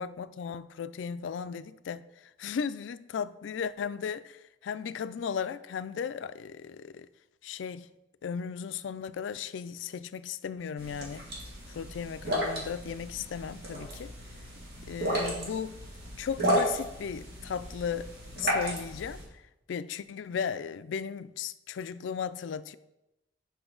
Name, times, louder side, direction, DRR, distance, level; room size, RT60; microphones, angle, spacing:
voice 1, 0.0-7.1 7.4-7.9 8.2-11.3 11.7-14.1 14.9-15.8 16.2-18.1 18.4-19.4 19.7-22.7, left 7 dB, 80° left, 0.3 m, -36 dB
sound 1, 10.8-19.2, equal, 55° right, 2.1 m, -33 dB
8.0 x 5.6 x 3.8 m
head